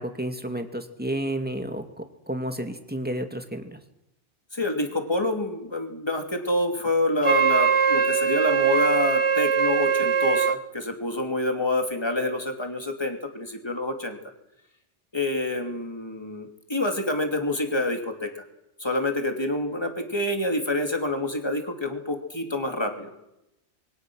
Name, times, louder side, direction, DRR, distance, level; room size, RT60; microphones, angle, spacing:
voice 1, 0.0-3.8, right 1 dB, 10° right, 6 dB, 2.3 m, -31 dB
voice 2, 4.5-14.2 15.1-18.4 18.8-23.1, left 1 dB, 20° left, 4 dB, 3.0 m, -27 dB
Wind instrument woodwind instrument, 7.2-10.6, right 6 dB, 25° right, 1.1 m, -21 dB
26.5 x 22.5 x 6.4 m, 0.87 s
omnidirectional pair, 1.2 m